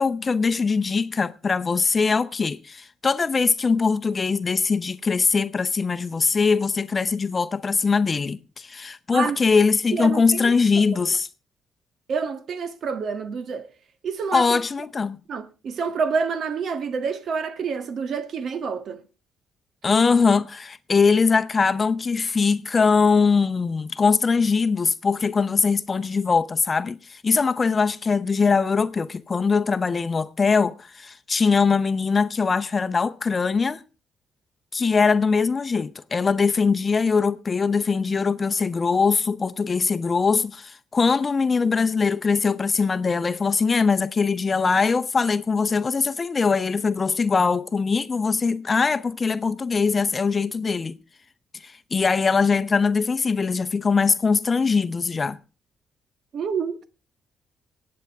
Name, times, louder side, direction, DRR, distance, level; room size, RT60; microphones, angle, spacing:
voice 1, 0.0-11.3 14.3-15.2 19.8-33.8 34.7-51.0 51.6-55.4, left 5 dB, 35° left, 0.7 m, -22 dB
voice 2, 9.9-11.0 12.1-13.7 14.0-14.5 15.3-19.0 56.3-56.8, right 5 dB, 60° right, 1.5 m, -28 dB
23.5 x 8.7 x 3.5 m
cardioid pair, 90°, 0 cm